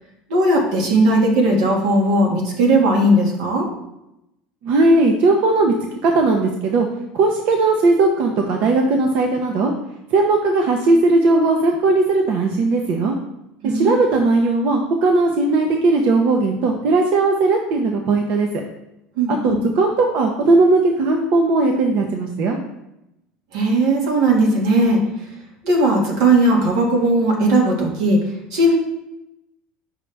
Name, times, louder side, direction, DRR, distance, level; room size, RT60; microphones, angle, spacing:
voice 1, 0.3-3.7 13.6-13.9 19.2-19.6 23.5-25.0 25.6-28.2 28.5-28.8, right 1 dB, 85° right, -1 dB, 1.9 m, -17 dB
voice 2, 4.6-5.8 6.0-6.9 7.1-9.7 10.1-13.2 13.6-18.5 19.4-22.6, right 3 dB, 55° right, 3 dB, 0.8 m, -17 dB
6.1 x 5.2 x 3.4 m, 0.88 s
cardioid pair, 145°, 3 cm